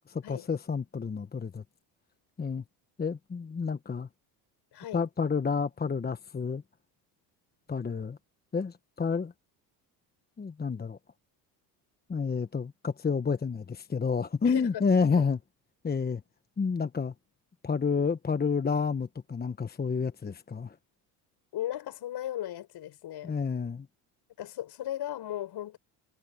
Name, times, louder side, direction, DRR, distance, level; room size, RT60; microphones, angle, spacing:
voice 1, 0.1-1.6 2.4-2.6 3.0-4.1 4.9-6.6 7.7-8.2 8.5-9.3 10.4-11.0 12.1-15.4 15.8-16.2 16.6-17.1 17.6-20.8 23.2-23.9, left 5 dB, 20° left, 1.1 m, -29 dB
voice 2, 4.7-5.0 14.4-14.8 15.2-15.3 21.5-23.4 24.4-25.8, left 12 dB, 60° left, 6.4 m, -36 dB
supercardioid pair, 85°, 46 cm